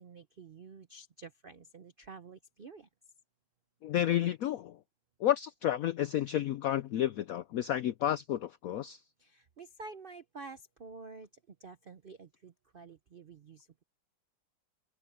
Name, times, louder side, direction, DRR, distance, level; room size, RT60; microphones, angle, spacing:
voice 1, 0.0-2.9 9.2-11.3 11.6-13.8, right 4 dB, 75° right, 0.5 m, -49 dB
voice 2, 3.8-4.7 5.2-9.0, left 12 dB, 90° left, 0.7 m, -31 dB
omnidirectional pair, 2.1 m